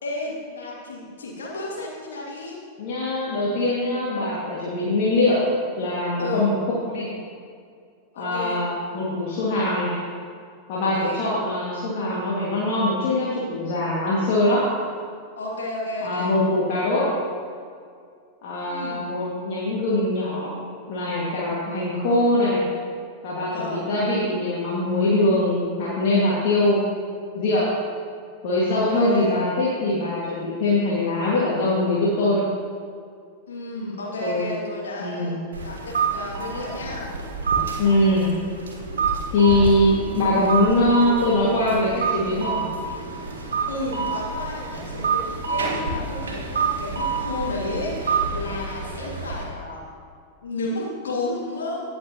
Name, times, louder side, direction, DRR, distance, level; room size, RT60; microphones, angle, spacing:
voice 1, 0.0-2.6 4.0-4.1 6.2-6.5 8.1-8.6 11.0-11.2 15.4-16.3 18.6-19.0 23.5-23.8 28.7-29.3 33.5-37.1 43.7-49.8 50.4-51.8, left 2 dB, 65° left, -4 dB, 2.5 m, -32 dB
voice 2, 2.8-5.4 5.7-6.5 6.9-7.1 8.2-9.9 10.7-14.6 16.0-17.1 18.4-20.5 20.9-22.6 23.2-26.8 27.3-27.7 28.4-32.4 34.2-34.5 35.0-35.4 37.8-38.3 39.3-42.6, left 1 dB, 50° left, -7 dB, 2.1 m, -22 dB
sound 1, 35.5-49.4, right 5 dB, 65° right, 1.4 m, -28 dB
17.5 x 6.6 x 3.0 m, 2.3 s
figure-of-eight pair, 90°, 0 cm